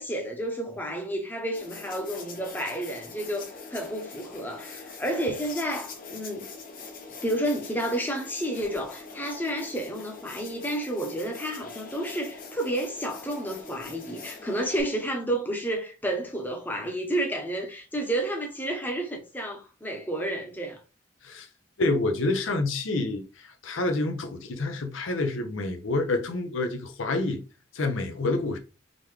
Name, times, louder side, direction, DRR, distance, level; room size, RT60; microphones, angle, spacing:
voice 1, 0.0-6.5 7.2-20.8, right 1 dB, 10° left, 0.8 m, -31 dB
sound 1, 1.5-14.8, left 4 dB, 45° left, 0.8 m, -43 dB
voice 2, 21.8-27.4 27.7-28.6, left 2 dB, 80° left, 0.7 m, -28 dB
3.8 x 3.4 x 3.1 m
head